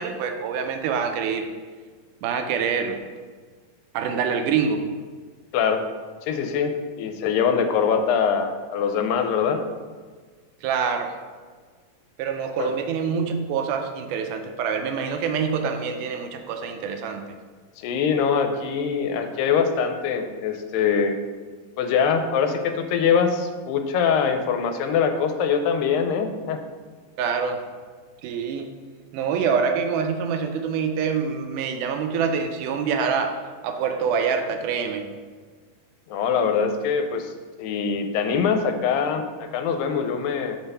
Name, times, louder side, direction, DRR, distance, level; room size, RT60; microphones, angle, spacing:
voice 1, 0.0-1.5 2.2-3.0 3.9-4.9 10.6-11.2 12.2-17.2 27.2-27.6 28.2-28.7 29.1-33.4 33.6-35.1, right 6 dB, 80° right, 6 dB, 1.9 m, -25 dB
voice 2, 6.2-6.7 7.0-9.6 12.6-12.7 17.8-21.2 21.8-26.6 36.1-37.3 37.6-40.6, left 6 dB, 85° left, 6 dB, 2.3 m, -23 dB
6.1 x 4.0 x 5.4 m, 1.5 s
omnidirectional pair, 4.0 m